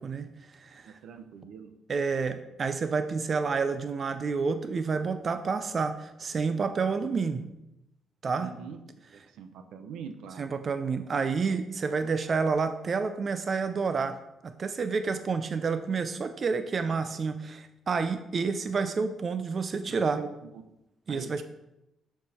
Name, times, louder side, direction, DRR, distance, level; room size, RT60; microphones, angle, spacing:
voice 1, 0.0-0.9 1.9-7.5 8.2-8.5 10.4-20.2 21.1-21.4, right 5 dB, 45° right, 9 dB, 0.5 m, -29 dB
voice 2, 0.8-1.7 8.4-8.8 9.1-10.4 16.8-17.1 19.8-20.6 21.1-21.4, right 6 dB, 85° right, 8 dB, 0.8 m, -44 dB
11.5 x 4.6 x 4.3 m, 0.90 s
cardioid pair, 90°, 0 cm